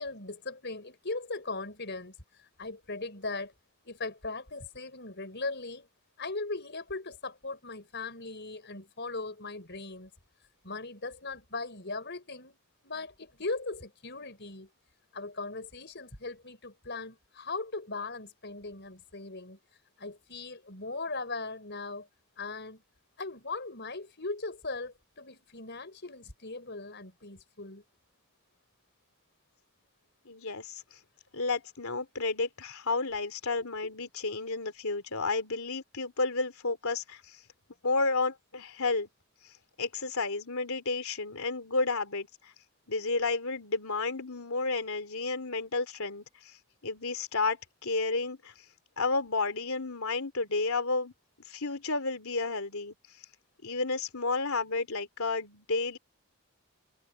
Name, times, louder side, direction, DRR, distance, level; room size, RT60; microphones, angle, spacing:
voice 1, 0.0-2.2 2.6-3.5 3.8-5.9 6.2-10.1 10.6-12.6 12.8-14.7 15.1-19.6 20.0-22.1 22.4-22.8 23.2-27.8 33.8-33.9, left 3 dB, 50° left, 5.7 m, -39 dB
voice 2, 30.2-30.8 31.3-37.4 37.8-39.1 39.8-42.5 42.9-46.5 46.8-48.5 49.0-51.1 51.5-52.9 53.6-56.0, left 3 dB, 75° left, 3.2 m, -31 dB
head